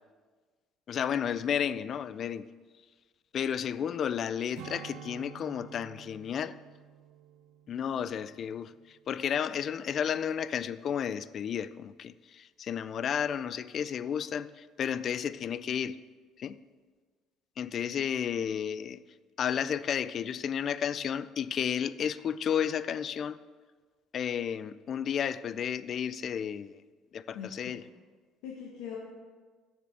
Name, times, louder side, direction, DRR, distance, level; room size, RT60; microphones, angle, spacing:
voice 1, 0.9-2.5 3.3-6.6 7.7-16.0 16.4-16.6 17.6-19.0 19.4-23.4 24.1-26.8 27.1-27.8, left 8 dB, 45° left, 16 dB, 0.4 m, -32 dB
Strum, 4.6-9.3 9.6-9.9, right 9 dB, 80° right, 0.9 m, -50 dB
voice 2, 27.3-27.9 28.4-29.0, left 8 dB, 80° left, -2 dB, 1.3 m, -42 dB
6.8 x 6.8 x 7.3 m, 1.4 s
cardioid pair, 115°, 0 cm